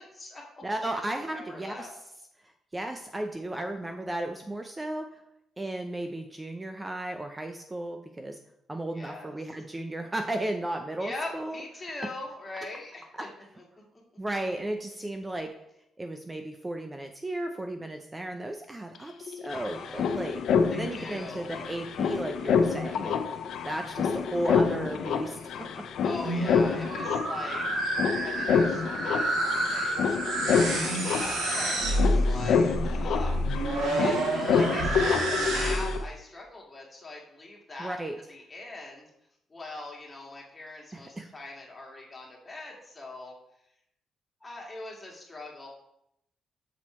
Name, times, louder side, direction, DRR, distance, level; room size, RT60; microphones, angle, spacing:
voice 1, 0.0-0.6 0.9-1.0 1.3-1.9 8.9-9.3 11.0-13.3 19.7-20.2 20.7-21.5 23.8-24.4 26.0-27.6 28.0-38.0 38.3-39.1 39.5-43.3 44.4-45.7, left 2 dB, 25° left, -1 dB, 1.9 m, -42 dB
voice 2, 0.6-1.9 2.4-5.1 5.6-8.4 8.7-11.6 13.1-13.3 14.2-15.5 16.0-20.4 20.8-23.2 23.7-25.7 37.8-38.1 40.9-41.3, right 1 dB, 15° right, 5 dB, 0.5 m, -34 dB
sound 1, 18.9-19.0 19.2-36.0, left 6 dB, 70° left, 0.6 m, -28 dB
sound 2, 26.1-36.1, right 1 dB, 85° right, 1.7 m, -29 dB
6.2 x 4.4 x 4.3 m, 0.78 s
cardioid pair, 90°, 0 cm